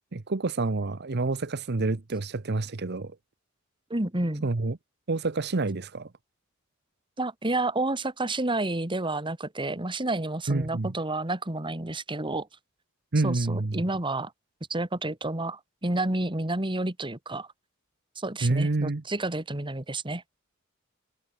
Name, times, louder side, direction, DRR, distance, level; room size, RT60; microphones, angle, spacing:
voice 1, 0.1-3.1 4.4-4.8 5.1-6.1 10.5-11.0 13.1-13.8 18.4-19.0, right 3 dB, 55° right, 0.9 m, -28 dB
voice 2, 3.9-4.4 7.2-12.5 13.2-14.3 14.7-17.5 18.2-20.2, right 2 dB, 25° right, 2.1 m, -30 dB
head